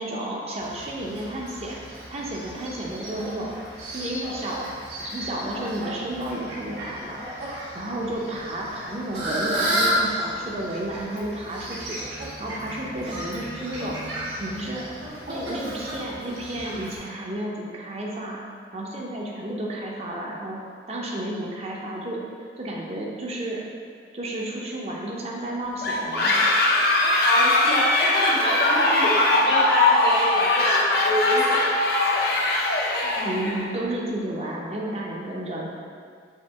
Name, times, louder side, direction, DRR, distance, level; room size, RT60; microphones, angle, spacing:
voice 1, 0.0-1.8 2.1-3.5 3.9-4.7 5.0-7.2 7.7-12.0 12.4-14.0 14.3-14.9 15.3-18.4 18.7-20.6 20.9-22.2 22.6-23.6 24.1-26.4 33.0-35.7, right 1 dB, 35° right, -2 dB, 0.5 m, -32 dB
Fowl, 0.6-17.0, equal, 75° right, 1.2 m, -33 dB
sound 1, 25.8-33.7, left 2 dB, 55° left, 0.5 m, -21 dB
voice 2, 27.2-31.6, left 1 dB, 75° left, -5 dB, 1.1 m, -25 dB
5.6 x 2.5 x 3.4 m, 2.2 s
head